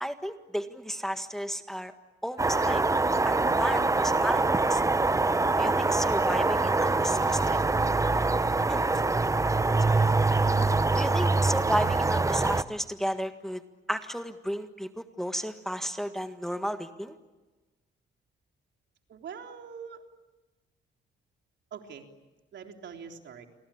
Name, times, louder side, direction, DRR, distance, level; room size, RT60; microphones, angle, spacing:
voice 1, 0.0-1.9 2.2-2.8 3.3-4.4 4.7-4.8 5.6-7.7 8.1-8.3 8.7-8.8 9.9-10.4 11.0-13.6 13.9-14.9 15.2-17.2, equal, ahead, 7 dB, 1.7 m, -33 dB
sound 1, 2.4-12.6, right 3 dB, 15° right, 0.9 m, -24 dB
voice 2, 19.1-20.0 21.7-22.1 22.5-23.5, right 7 dB, 65° right, 3 dB, 3.7 m, -43 dB
29.5 x 23.5 x 8.7 m, 1.2 s
cardioid pair, 90°, 20 cm